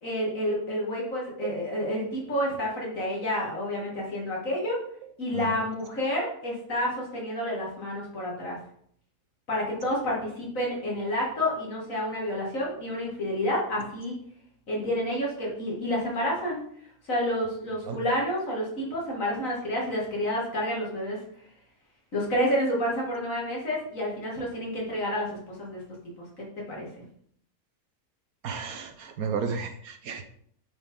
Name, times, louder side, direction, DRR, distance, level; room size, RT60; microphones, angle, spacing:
voice 1, 0.0-4.8 5.2-8.6 9.5-14.1 14.7-16.6 17.0-21.2 22.1-25.8 26.7-26.9, equal, 60° left, -4 dB, 2.7 m, -29 dB
voice 2, 28.4-30.2, right 5 dB, 70° right, 7 dB, 1.3 m, -33 dB
9.0 x 5.0 x 3.8 m, 0.66 s
omnidirectional pair, 1.6 m